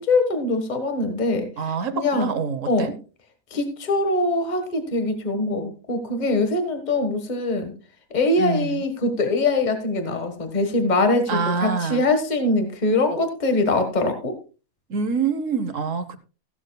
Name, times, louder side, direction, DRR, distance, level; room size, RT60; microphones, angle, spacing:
voice 1, 0.0-1.5 1.9-2.3 2.7-3.0 3.5-7.7 8.1-14.4, left 2 dB, 35° left, 7 dB, 1.5 m, -23 dB
voice 2, 1.6-2.9 8.4-8.8 11.3-12.0 14.9-16.2, right 5 dB, 70° right, 11 dB, 1.4 m, -26 dB
15.5 x 12.0 x 2.3 m, 0.34 s
omnidirectional pair, 1.4 m